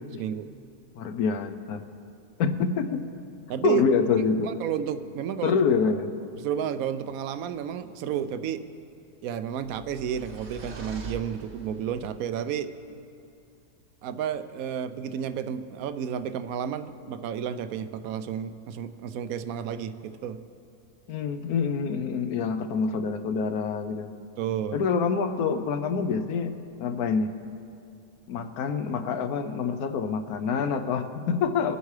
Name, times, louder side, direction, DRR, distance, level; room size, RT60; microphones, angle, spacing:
voice 1, 1.0-1.8 2.4-3.0 3.6-4.5 5.4-6.1 21.1-24.1 24.7-26.5 26.8-27.3 28.3-31.8, left 5 dB, 70° left, 9 dB, 1.1 m, -26 dB
voice 2, 3.5-3.8 4.4-5.6 6.4-8.6 9.2-12.7 14.0-20.4 24.4-24.8, right 9 dB, 70° right, 11 dB, 0.9 m, -31 dB
sound 1, 9.6-12.0, right 2 dB, 50° right, 1.1 m, -42 dB
24.0 x 8.1 x 3.3 m, 2.5 s
omnidirectional pair, 1.8 m